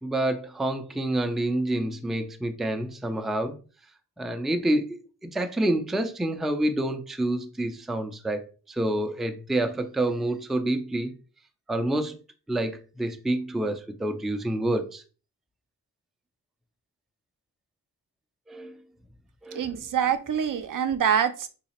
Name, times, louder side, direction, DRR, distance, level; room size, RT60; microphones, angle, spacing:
voice 1, 0.0-3.6 4.2-5.0 5.3-11.1 11.7-12.2 12.5-15.0 18.5-18.8 19.4-19.8, right 1 dB, ahead, 0.3 m, -28 dB
voice 2, 19.5-21.5, right 8 dB, 60° right, 0.5 m, -25 dB
4.0 x 2.8 x 2.9 m
wide cardioid pair, 145°, 36 cm